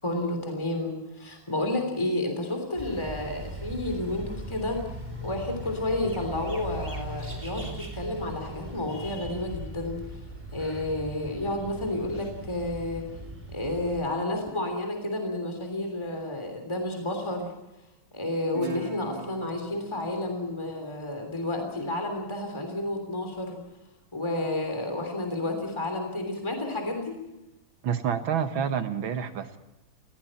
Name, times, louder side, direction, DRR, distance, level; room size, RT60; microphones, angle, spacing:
voice 1, 0.0-4.8 5.2-10.0 10.5-13.0 13.5-17.5 18.1-23.6 24.1-27.2, left 1 dB, 15° left, 4 dB, 3.3 m, -31 dB
sound 1, 2.8-14.0, equal, 5° right, 3.9 m, -39 dB
Guitar, 18.5-21.8, right 3 dB, 25° right, 2.4 m, -42 dB
voice 2, 27.8-29.6, right 7 dB, 80° right, 9 dB, 2.2 m, -28 dB
21.0 x 16.5 x 8.8 m, 1.0 s
omnidirectional pair, 2.2 m